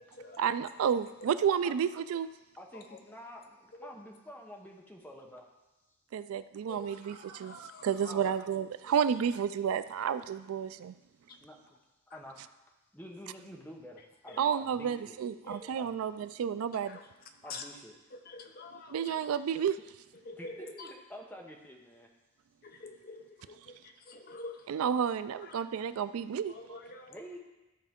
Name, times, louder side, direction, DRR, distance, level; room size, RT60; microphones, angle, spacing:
voice 1, 0.4-2.3 6.1-10.9 14.4-17.0 18.9-19.8 24.7-26.5, right 8 dB, 75° right, 13 dB, 0.3 m, -31 dB
voice 2, 2.6-5.5 8.0-8.3 11.4-11.8 12.1-12.4 12.9-15.2 15.7-16.0 17.4-18.0 20.3-22.1 27.1-27.4, equal, 10° left, -1 dB, 0.9 m, -48 dB
voice 3, 6.7-7.9 15.5-15.7 16.9-17.0 17.5-17.6 18.3-19.2 20.3-20.9 22.6-23.2 24.1-24.6 25.5-25.6 26.5-27.1, left 3 dB, 40° left, 5 dB, 0.6 m, -46 dB
13.0 x 4.5 x 3.6 m, 1.1 s
head